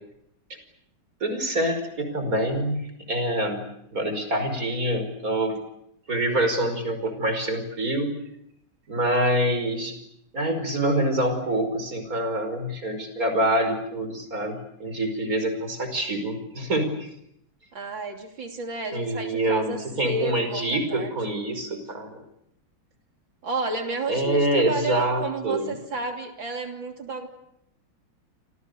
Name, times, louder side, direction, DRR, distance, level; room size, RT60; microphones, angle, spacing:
voice 1, 1.2-2.8 3.1-5.6 6.1-8.1 8.9-9.9 10.3-17.1 18.9-22.1 24.1-25.7, right 1 dB, 40° right, 7 dB, 5.7 m, -26 dB
voice 2, 17.7-21.2 23.4-27.3, right 3 dB, 65° right, 4 dB, 3.8 m, -31 dB
28.5 x 27.5 x 6.9 m, 0.77 s
omnidirectional pair, 2.3 m